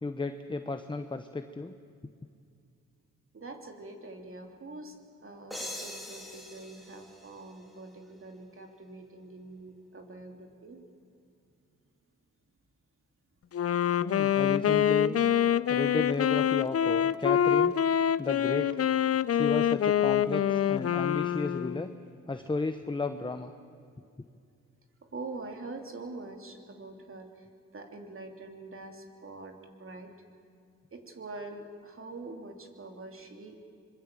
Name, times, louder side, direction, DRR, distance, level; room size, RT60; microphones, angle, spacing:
voice 1, 0.0-1.7 14.0-15.2 15.7-17.7 18.2-18.8 19.3-21.9 22.3-23.5, left 3 dB, 15° left, 8 dB, 0.9 m, -33 dB
voice 2, 3.3-5.0 5.2-10.9 25.0-27.4 27.7-30.1 30.9-33.6, right 2 dB, 45° right, 4 dB, 3.1 m, -44 dB
sound 1, 5.5-8.2, left 1 dB, ahead, 3.5 m, -43 dB
Wind instrument woodwind instrument, 13.5-21.9, left 9 dB, 50° left, 0.6 m, -26 dB
25.5 x 22.0 x 7.5 m, 2.4 s
cardioid pair, 85°, 30 cm